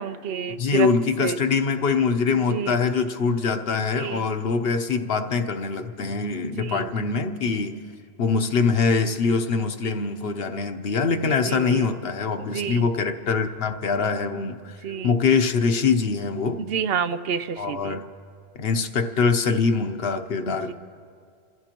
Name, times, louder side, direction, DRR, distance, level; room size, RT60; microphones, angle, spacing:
voice 1, 0.0-0.9 1.2-1.4 2.5-2.8 3.9-4.2 6.6-6.9 11.4-11.9 12.4-12.9 14.8-15.2 16.6-18.0 20.5-20.7, right 7 dB, 70° right, 12 dB, 0.8 m, -29 dB
voice 2, 0.6-7.8 8.2-14.8 15.0-16.6 17.6-18.0 18.6-20.7, left 5 dB, 65° left, 7 dB, 1.1 m, -23 dB
28.0 x 15.5 x 3.0 m, 2.2 s
omnidirectional pair, 1.1 m